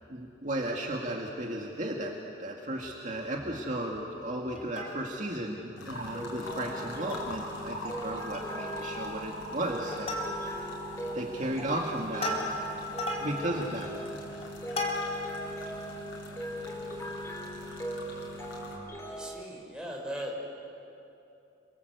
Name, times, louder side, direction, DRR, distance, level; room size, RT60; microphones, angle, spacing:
voice 1, 0.1-2.1 2.4-10.7 11.1-12.4 13.2-13.9, right 1 dB, 40° right, 0 dB, 2.1 m, -35 dB
Plucked string instrument, 4.5-5.3 5.8-5.9 6.1-6.3 6.8-7.4 7.8-7.9 8.2-8.6 8.9-9.3 9.7-10.7 11.3-15.4 15.9-16.0, left 1 dB, 35° left, 4.1 m, -36 dB
sound 1, 5.8-18.8, equal, 85° left, 6.2 m, -43 dB
sound 2, 6.1-19.4, equal, 15° left, 3.3 m, -41 dB
voice 2, 19.0-20.4, equal, 5° right, -2 dB, 5.1 m, -38 dB
29.5 x 24.0 x 8.1 m, 2.8 s
head